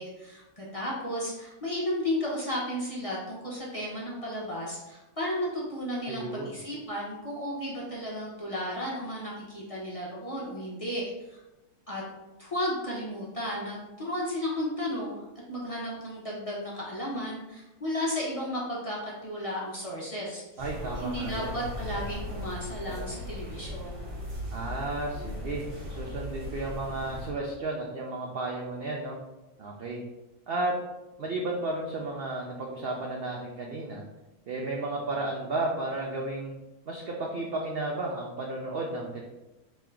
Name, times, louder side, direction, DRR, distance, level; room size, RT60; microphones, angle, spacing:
voice 1, 0.0-11.4 11.9-12.0 12.4-20.6 21.0-24.0, left 1 dB, 30° left, -5 dB, 0.8 m, -34 dB
voice 2, 6.1-6.5 20.6-21.6 24.5-25.6 25.9-29.2 29.6-30.0 30.5-30.7 31.2-34.0 34.5-36.5 36.9-39.2, right 2 dB, 65° right, -1 dB, 0.6 m, -33 dB
sound 1, 20.6-27.3, left 1 dB, 40° right, 1.4 m, -38 dB
3.7 x 3.1 x 4.4 m, 1.0 s
omnidirectional pair, 1.6 m